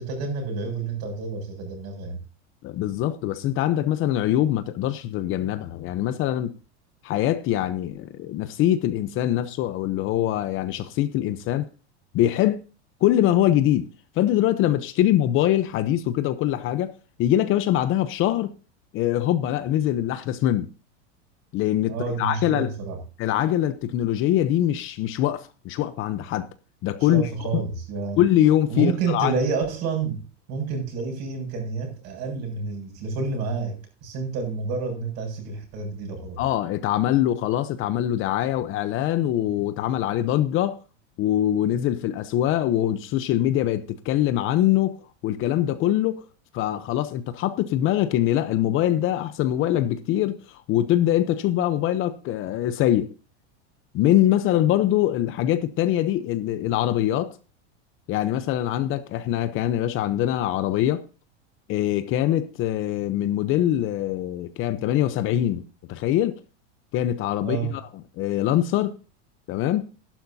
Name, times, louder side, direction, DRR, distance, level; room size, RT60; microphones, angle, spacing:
voice 1, 0.0-2.2 21.9-23.0 27.0-28.2 28.7-30.2 30.5-36.4 67.4-67.7, right 4 dB, 45° right, 7.3 m, -29 dB
voice 2, 2.6-6.5 7.0-11.7 12.1-12.6 13.0-13.9 14.2-16.9 17.2-18.5 18.9-20.7 21.5-22.7 23.2-26.5 26.8-27.3 28.2-29.4 36.4-40.8 41.2-45.0 45.2-46.3 46.5-53.1 53.9-57.4 58.1-61.1 61.7-66.4 66.9-67.8 68.2-68.9 69.5-69.9, left 12 dB, 35° left, 0.8 m, -23 dB
13.5 x 12.0 x 2.8 m
supercardioid pair, 145°, 35 cm